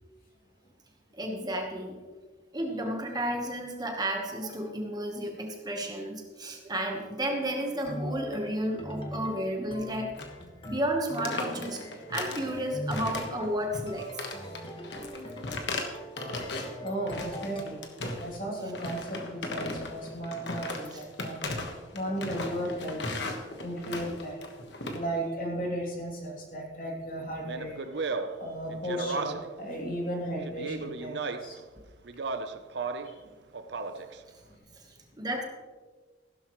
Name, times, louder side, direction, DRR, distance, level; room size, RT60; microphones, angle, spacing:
voice 1, 1.1-2.0 2.5-10.1 10.6-11.8 12.1-14.1 20.9-21.0 34.8-35.4, right 1 dB, 20° right, 2 dB, 1.1 m, -32 dB
sound 1, 7.8-17.6, equal, 30° left, 1.5 m, -41 dB
sound 2, 10.1-10.4 10.7-10.8 11.1-12.5 12.9-13.5 13.7-16.8 17.1-18.4 18.7-25.0, left 2 dB, 65° left, 1.4 m, -37 dB
voice 2, 16.8-17.8 18.2-21.4 21.9-23.0 23.6-24.4 24.9-27.8 28.4-31.6 33.0-33.1, right 1 dB, 45° left, -1 dB, 2.8 m, -35 dB
Speech, 27.4-29.6 30.4-31.6 32.1-33.2 33.5-34.2, right 4 dB, 65° right, 0.7 m, -35 dB
15.5 x 12.0 x 3.1 m, 1.4 s
head